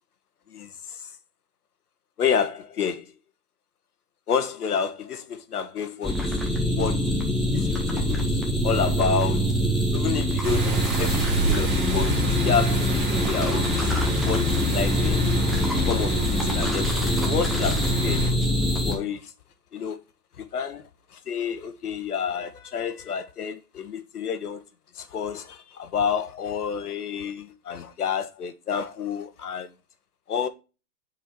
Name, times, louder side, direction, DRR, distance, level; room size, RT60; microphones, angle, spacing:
voice 1, 0.5-1.1 2.2-3.1 4.3-7.0 7.5-8.3 8.6-9.5 9.9-18.3 18.9-19.3 19.7-20.0 20.4-24.6 24.9-29.7 30.3-30.5, left 7 dB, 65° left, 1.2 m, -30 dB
sound 1, 6.0-18.9, left 1 dB, ahead, 0.4 m, -24 dB
sound 2, 10.4-18.3, right 4 dB, 30° right, 2.0 m, -30 dB
6.3 x 4.5 x 4.5 m
hypercardioid pair, 170°, 50 cm